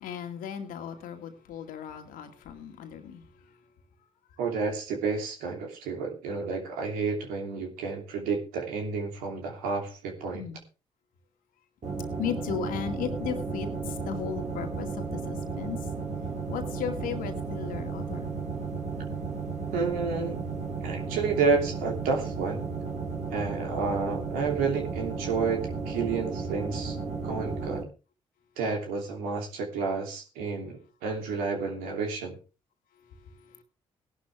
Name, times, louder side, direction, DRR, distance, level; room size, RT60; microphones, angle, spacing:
voice 1, 0.0-3.2 10.3-10.6 12.2-15.8 16.5-18.3, left 8 dB, 70° left, 6 dB, 2.2 m, -36 dB
voice 2, 4.4-10.5 19.7-20.4 20.8-22.7 23.3-27.0 27.2-27.8 28.6-32.4, right 4 dB, 75° right, 2 dB, 3.0 m, -30 dB
sound 1, 11.8-27.8, right 4 dB, 55° right, 4.1 m, -34 dB
17.5 x 11.5 x 3.5 m, 0.33 s
hypercardioid pair, 40°, 15 cm